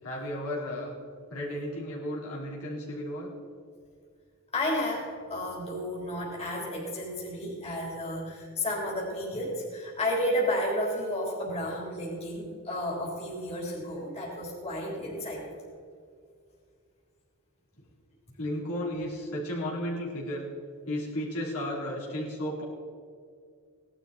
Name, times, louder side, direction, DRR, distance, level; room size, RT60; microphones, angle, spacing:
voice 1, 0.0-0.9 1.3-3.3 13.9-14.1 18.4-20.5 20.8-22.6, equal, 70° left, -4 dB, 3.8 m, -34 dB
voice 2, 4.5-15.4, left 1 dB, 30° left, -3 dB, 3.8 m, -32 dB
18.0 x 12.0 x 4.4 m, 2.2 s
head